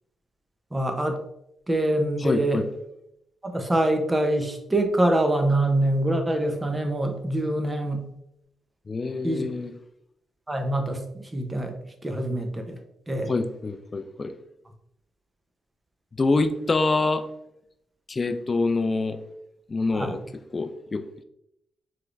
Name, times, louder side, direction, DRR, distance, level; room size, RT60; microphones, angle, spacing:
voice 1, 0.7-1.2 1.7-2.6 3.4-8.0 9.2-9.4 10.5-11.7 12.0-12.8 13.1-13.3 19.9-20.2, right 1 dB, 15° right, 5 dB, 0.7 m, -25 dB
voice 2, 2.2-2.7 8.9-9.7 13.3-14.3 16.2-17.3 18.1-19.2 19.7-20.2 20.5-21.2, left 3 dB, 30° left, 10 dB, 0.4 m, -25 dB
4.8 x 3.4 x 2.5 m, 0.80 s
cardioid pair, 115°, 0 cm